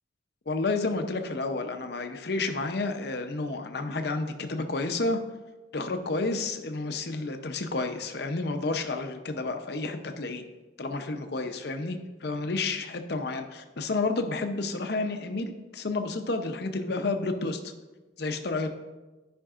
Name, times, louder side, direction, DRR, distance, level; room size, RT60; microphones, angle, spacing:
voice 1, 0.5-5.2 5.7-10.4 10.8-17.7 18.2-18.7, left 3 dB, 60° left, 6 dB, 0.7 m, -30 dB
13.0 x 5.2 x 2.5 m, 1.2 s
head